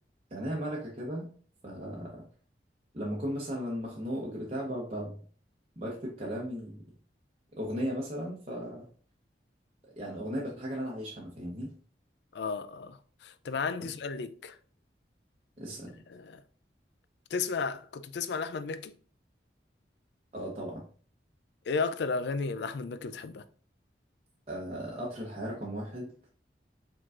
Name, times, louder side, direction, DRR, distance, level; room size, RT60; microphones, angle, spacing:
voice 1, 0.3-1.3 1.6-2.2 2.9-5.1 5.8-6.8 7.6-8.9 10.0-11.7 13.8-13.9 15.6-15.9 20.3-20.8 24.5-26.1, equal, 35° right, 0.9 m, -36 dB
voice 2, 12.3-14.6 16.1-16.4 17.3-18.9 21.7-23.4, left 4 dB, 75° left, 0.4 m, -33 dB
4.9 x 3.8 x 2.5 m
head